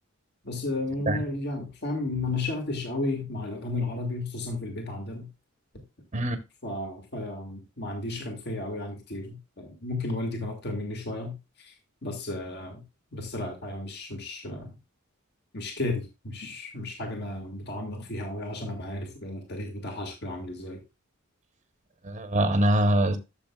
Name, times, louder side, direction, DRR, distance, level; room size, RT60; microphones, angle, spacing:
voice 1, 0.4-5.3 6.6-11.7 12.0-12.8 13.1-14.7 15.5-20.8, left 2 dB, 50° left, 2.0 m, -33 dB
voice 2, 1.1-1.4 6.1-6.4 22.0-23.2, right 1 dB, 35° right, 1.0 m, -24 dB
12.5 x 7.2 x 2.3 m
head